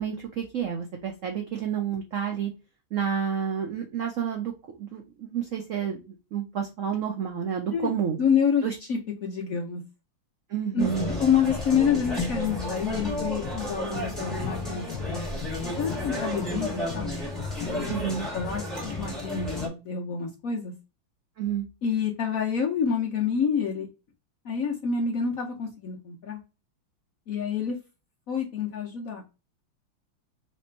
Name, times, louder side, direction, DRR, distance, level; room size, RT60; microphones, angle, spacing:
voice 1, 0.0-2.5 2.9-4.5 4.8-6.0 6.3-8.2 8.6-8.7 10.5-11.1 17.9-18.3 21.4-21.7, right 8 dB, 70° right, 2 dB, 0.7 m, -29 dB
voice 2, 8.2-8.6 8.9-9.8 10.7-10.9 11.2-15.4 15.8-17.2 18.3-20.7 21.8-23.9 24.4-26.4 27.3-27.8 28.3-29.2, left 6 dB, 60° left, 0 dB, 0.9 m, -27 dB
sound 1, 10.8-19.7, left 2 dB, ahead, 1.5 m, -32 dB
3.3 x 3.0 x 4.3 m, 0.29 s
omnidirectional pair, 2.2 m